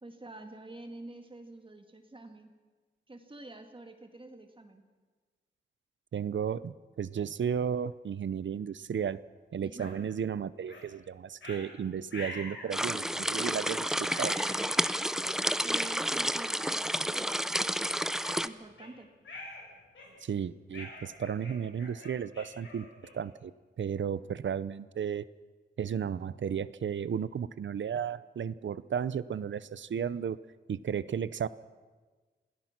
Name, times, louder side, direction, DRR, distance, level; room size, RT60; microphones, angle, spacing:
voice 1, 0.0-2.5 3.1-4.8 9.6-10.0 15.6-17.4 18.4-19.1, right 2 dB, 25° right, 5 dB, 2.0 m, -48 dB
voice 2, 6.1-9.2 9.5-14.4 20.2-22.9 23.1-23.5 23.8-25.3 25.8-30.4 30.7-31.5, right 7 dB, 75° right, 17 dB, 0.7 m, -34 dB
sound 1, 9.8-9.9 10.7-10.9 11.4-11.6 12.1-12.7 13.3-13.6 14.0-15.0 15.7-15.8 16.5-16.7 17.1-17.3 17.8-18.9 19.2-19.6 19.9-20.3 20.7-23.3, left 2 dB, 90° left, 7.8 m, -45 dB
sound 2, 12.7-18.5, equal, 5° right, 0.6 m, -30 dB
27.5 x 18.0 x 6.0 m, 1.4 s
wide cardioid pair, 105°, 19 cm